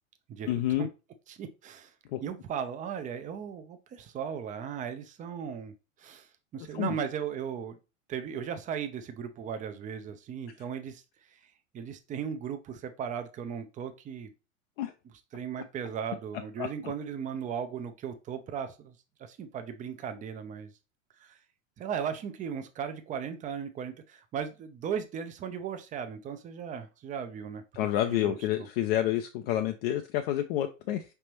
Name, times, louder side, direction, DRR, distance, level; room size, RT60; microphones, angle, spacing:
voice 1, 0.5-0.9 2.1-2.2 6.7-7.0 14.8-14.9 16.6-16.7 27.7-31.0, left 12 dB, 45° left, 0.5 m, -29 dB
voice 2, 1.3-1.9 2.2-7.8 8.1-11.0 11.3-11.4 11.7-14.3 15.3-20.7 21.2-21.4 21.8-27.6 28.1-28.7, right 7 dB, 20° right, 0.5 m, -37 dB
5.0 x 3.4 x 2.9 m
figure-of-eight pair, 95°, 41 cm